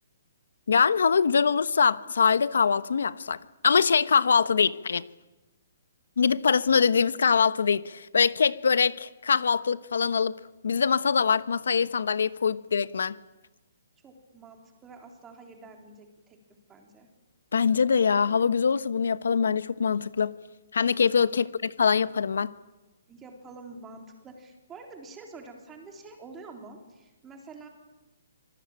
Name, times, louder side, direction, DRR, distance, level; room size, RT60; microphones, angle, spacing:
voice 1, 0.7-3.4 3.6-5.0 6.2-10.3 10.6-13.1 17.5-20.3 20.7-21.5 21.8-22.5, left 6 dB, 85° left, 1.0 m, -23 dB
voice 2, 14.0-16.4 16.7-17.1 23.1-27.7, right 3 dB, 15° right, 3.6 m, -47 dB
26.0 x 19.0 x 8.9 m
hypercardioid pair, 160°, 0 cm